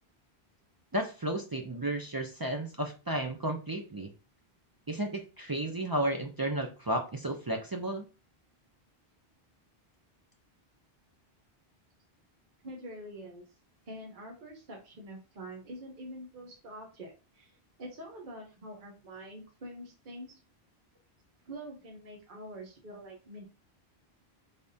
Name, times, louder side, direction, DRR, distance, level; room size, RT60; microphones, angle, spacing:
voice 1, 0.9-4.1 4.9-8.1, right 1 dB, 35° right, 2 dB, 0.3 m, -33 dB
voice 2, 12.6-13.4 13.9-20.4 21.5-23.4, right 1 dB, 55° right, 0 dB, 1.0 m, -45 dB
3.9 x 3.4 x 2.7 m, 0.32 s
omnidirectional pair, 1.1 m